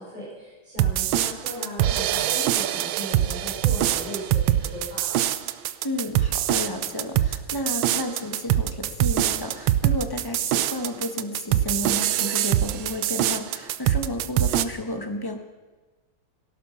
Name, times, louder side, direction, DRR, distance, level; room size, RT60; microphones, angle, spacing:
voice 1, 0.0-5.2, equal, 20° right, -7 dB, 7.2 m, -37 dB
sound 1, 0.8-14.6, right 12 dB, 75° right, 1.3 m, -23 dB
voice 2, 5.8-15.4, left 1 dB, 20° left, 5 dB, 0.7 m, -32 dB
17.5 x 11.5 x 5.7 m, 1.3 s
omnidirectional pair, 2.4 m